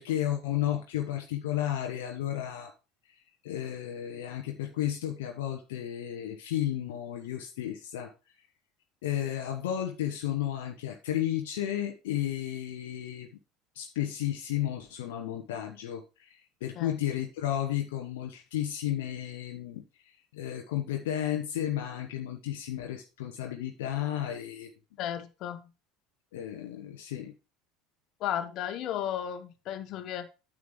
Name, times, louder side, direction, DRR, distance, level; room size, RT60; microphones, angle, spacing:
voice 1, 0.0-2.7 3.4-8.1 9.0-13.3 13.7-24.7 26.3-27.3, left 11 dB, 70° left, 4 dB, 0.9 m, -33 dB
voice 2, 25.0-25.7 28.2-30.3, left 10 dB, 50° left, 9 dB, 1.3 m, -34 dB
9.4 x 7.6 x 3.2 m, 0.29 s
figure-of-eight pair, 70°, 0 cm